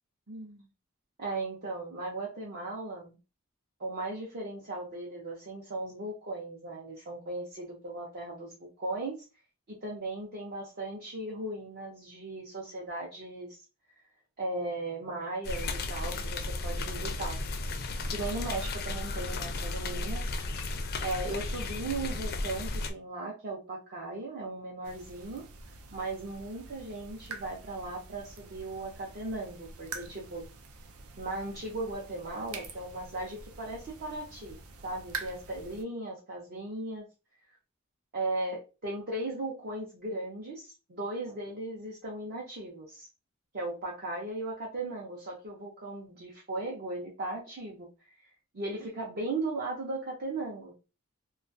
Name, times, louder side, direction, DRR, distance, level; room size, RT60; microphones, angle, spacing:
voice 1, 0.3-0.7 1.2-3.2 3.8-9.2 9.7-13.6 14.4-17.4 18.1-20.3 21.0-25.4 25.9-30.4 31.2-34.6 34.8-37.1 38.1-43.1 43.5-47.9 48.5-50.9, right 2 dB, 50° right, -4 dB, 0.7 m, -37 dB
sound 1, 15.4-22.9, left 2 dB, 45° left, 0.4 m, -34 dB
sound 2, 24.8-35.8, right 4 dB, 90° right, 0.5 m, -46 dB
2.3 x 2.3 x 2.5 m, 0.29 s
head